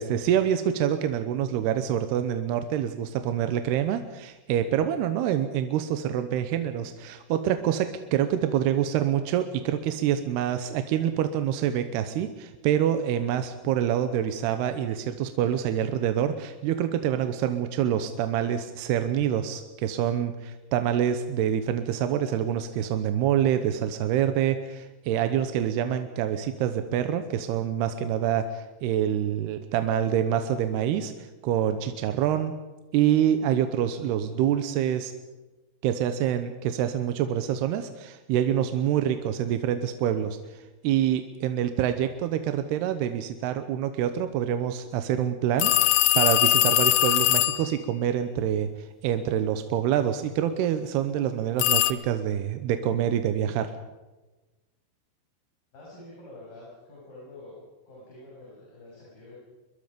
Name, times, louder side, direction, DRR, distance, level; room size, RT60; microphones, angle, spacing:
voice 1, 0.0-32.5 32.9-35.1 35.8-53.7, right 10 dB, 75° right, 9 dB, 2.7 m, -26 dB
sound 1, 45.6-47.7 51.6-51.9, left 16 dB, 75° left, 2.6 m, -21 dB
voice 2, 55.7-57.6 57.9-59.4, left 2 dB, 50° left, -6 dB, 9.0 m, -47 dB
24.5 x 22.0 x 5.2 m, 1.1 s
omnidirectional pair, 5.3 m